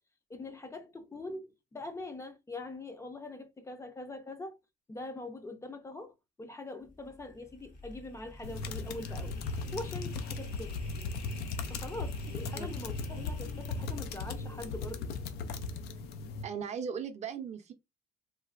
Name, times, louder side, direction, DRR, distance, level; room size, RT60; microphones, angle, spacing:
voice 1, 0.3-4.6 4.9-9.4 9.7-10.8 11.7-15.1, left 2 dB, 15° left, 0.5 m, -43 dB
sound 1, 6.8-15.9, left 2 dB, 55° left, 0.9 m, -49 dB
sound 2, 8.4-16.4, left 4 dB, 70° left, 0.4 m, -37 dB
voice 2, 16.4-17.7, right 7 dB, 40° right, 0.6 m, -38 dB
3.1 x 2.1 x 2.4 m
cardioid pair, 110°, 17 cm